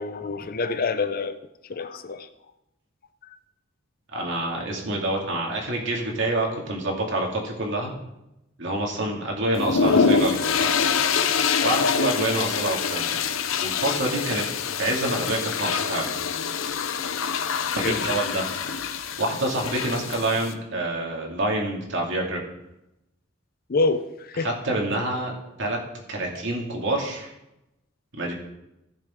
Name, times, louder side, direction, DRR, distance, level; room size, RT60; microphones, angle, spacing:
voice 1, 0.0-1.4 1.7-2.3 11.6-11.7 13.5-13.8 17.8-18.0 23.7-24.5 26.3-26.4, left 3 dB, 45° left, 0.6 m, -27 dB
voice 2, 4.1-8.0 8.6-10.7 11.6-13.2 13.6-14.4 14.8-16.1 17.7-18.5 19.2-22.4 24.4-25.3 25.6-25.8 26.1-27.3 28.2-28.3, right 1 dB, 65° right, 2.3 m, -27 dB
sound 1, 9.5-20.5, left 6 dB, 85° left, 0.7 m, -25 dB
15.5 x 6.7 x 3.7 m
head